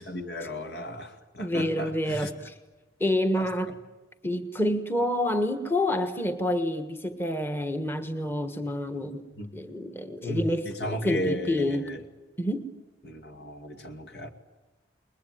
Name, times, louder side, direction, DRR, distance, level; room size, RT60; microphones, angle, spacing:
voice 1, 0.0-2.3 9.4-9.5 10.2-12.0 13.0-14.3, equal, 70° left, 2.4 m, -34 dB
voice 2, 1.4-2.5 3.0-3.7 4.2-9.2 9.5-11.9 12.4-12.7, left 1 dB, 10° left, 1.4 m, -28 dB
28.5 x 21.5 x 9.4 m
head